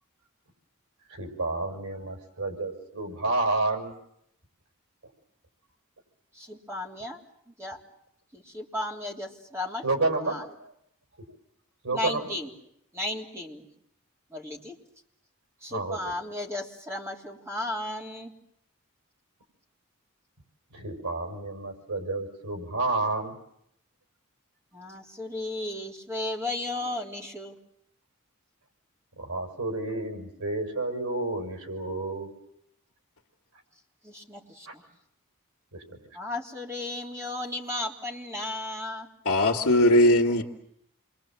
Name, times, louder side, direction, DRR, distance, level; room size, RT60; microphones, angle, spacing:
voice 1, 1.1-3.9 9.8-10.7 11.8-12.3 15.7-16.0 20.7-23.3 29.2-32.3 34.7-34.8 35.7-36.0, right 2 dB, 80° right, 4 dB, 5.9 m, -30 dB
voice 2, 6.3-7.8 8.3-9.8 10.2-10.4 11.9-12.5 12.9-13.7 14.3-14.8 15.6-18.3 24.7-27.5 34.0-34.8 36.1-39.1, left 2 dB, 10° right, -1 dB, 3.4 m, -35 dB
voice 3, 39.3-40.4, left 1 dB, 65° left, 1 dB, 1.9 m, -19 dB
28.5 x 23.0 x 7.5 m, 0.75 s
head